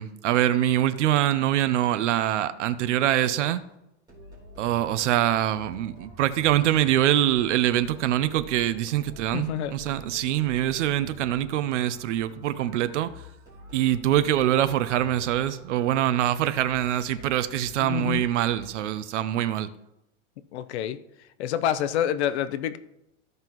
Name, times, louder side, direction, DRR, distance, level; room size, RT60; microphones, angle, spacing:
voice 1, 0.0-3.6 4.6-13.1 13.7-19.7, right 12 dB, 75° right, 0.7 m, -24 dB
sound 1, 4.1-19.0, equal, 10° right, 3.6 m, -47 dB
voice 2, 9.3-9.7 17.8-18.2 20.5-21.0 21.4-22.8, left 10 dB, 65° left, 0.7 m, -27 dB
14.5 x 5.5 x 3.0 m
supercardioid pair, 160°, 36 cm